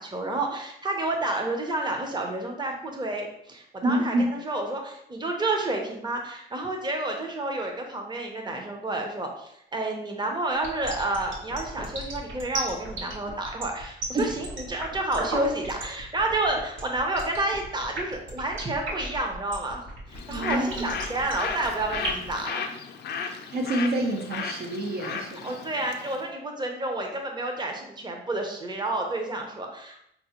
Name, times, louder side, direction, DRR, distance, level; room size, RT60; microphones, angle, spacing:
voice 1, 0.0-19.8 20.1-22.7 25.4-30.0, right 2 dB, 20° right, 2 dB, 0.7 m, -30 dB
voice 2, 3.8-4.3 14.1-14.3 20.3-20.9 23.2-25.6, right 1 dB, 55° right, 1 dB, 0.6 m, -27 dB
sound 1, 10.5-22.3, right 2 dB, 70° right, 1.1 m, -35 dB
Bird, 20.1-26.3, left 6 dB, 55° left, 0.5 m, -35 dB
5.2 x 2.1 x 2.9 m, 0.74 s
cardioid pair, 90°, 20 cm